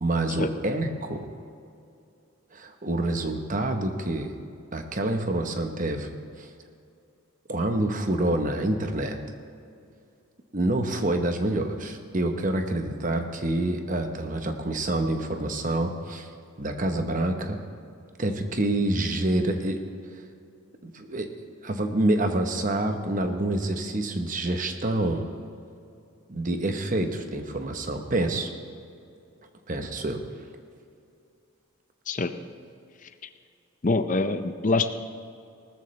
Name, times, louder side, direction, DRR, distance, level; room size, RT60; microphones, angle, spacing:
voice 1, 0.0-1.3 2.5-4.3 4.7-6.5 7.5-9.2 10.5-16.3 16.6-17.6 18.2-19.8 20.8-21.3 21.6-25.2 26.3-28.5 29.7-30.2, right 1 dB, 35° right, 6 dB, 1.0 m, -27 dB
voice 2, 33.8-34.9, left 3 dB, 35° left, 10 dB, 0.5 m, -24 dB
18.5 x 13.5 x 3.3 m, 2.5 s
head